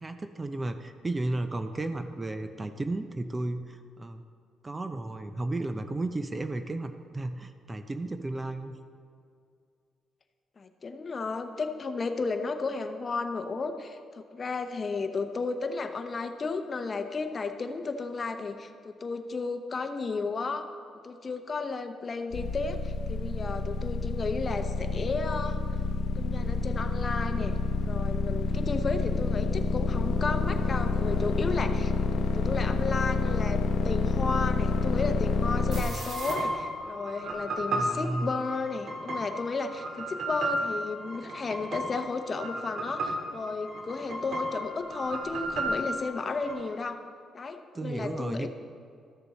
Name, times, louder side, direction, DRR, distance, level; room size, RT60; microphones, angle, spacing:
voice 1, 0.0-4.2 4.6-8.8 37.7-38.3 47.7-48.5, right 2 dB, 25° right, 8 dB, 0.5 m, -33 dB
voice 2, 10.6-20.7 21.0-25.6 26.1-27.6 27.8-47.0 47.3-48.5, left 4 dB, 35° left, 6 dB, 0.7 m, -33 dB
sound 1, 22.3-35.8, left 3 dB, 85° left, 0.8 m, -28 dB
sound 2, 35.7-46.5, right 1 dB, 65° right, 1.8 m, -34 dB
13.0 x 6.8 x 4.1 m, 2.3 s
cardioid pair, 90°, 0 cm